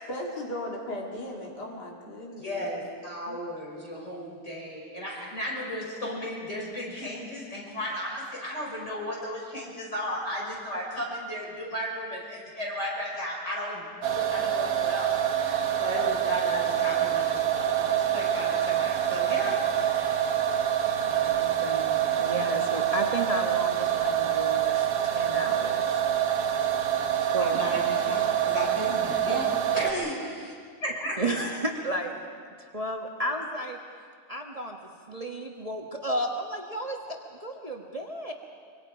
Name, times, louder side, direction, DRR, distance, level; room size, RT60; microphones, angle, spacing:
voice 1, 0.1-2.7, left 1 dB, 85° left, -2 dB, 3.2 m, -36 dB
voice 2, 2.4-20.3 22.3-22.4 27.4-30.5 30.8-31.2, equal, 45° left, -4 dB, 6.7 m, -35 dB
sound 1, 14.0-29.9, right 10 dB, 80° right, 1.7 m, -26 dB
voice 3, 20.7-26.0 27.2-28.0 31.2-32.2 32.6-33.8 34.3-34.8 35.1-38.3, right 1 dB, 25° right, 1 dB, 1.4 m, -33 dB
25.0 x 25.0 x 5.1 m, 2.1 s
omnidirectional pair, 1.7 m